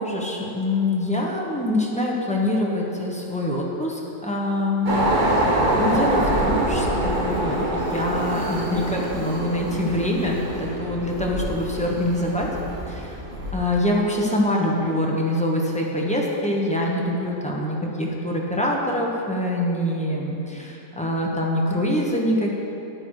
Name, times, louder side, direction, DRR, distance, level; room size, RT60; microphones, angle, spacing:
voice 1, 0.0-5.5 5.8-12.5 12.9-13.2 13.5-22.5, left 1 dB, 5° left, -3 dB, 0.6 m, -25 dB
sound 1, 4.9-13.5, right 1 dB, 30° right, 1.2 m, -25 dB
9.7 x 8.9 x 4.8 m, 2.9 s
omnidirectional pair, 2.0 m